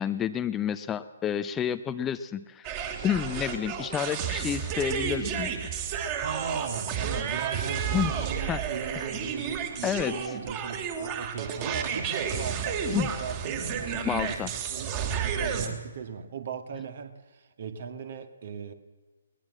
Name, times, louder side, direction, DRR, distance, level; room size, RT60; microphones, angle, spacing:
voice 1, 0.0-2.7 3.0-5.5 7.9-8.1 8.5-8.6 9.8-10.3 12.9-13.1 14.0-14.5, left 9 dB, 15° left, 11 dB, 0.7 m, -29 dB
sound 1, 2.6-15.7, right 7 dB, 30° right, 3.0 m, -32 dB
voice 2, 6.1-18.7, right 7 dB, 50° right, 9 dB, 2.1 m, -38 dB
21.5 x 20.0 x 7.4 m, 1.3 s
figure-of-eight pair, 135°, 0 cm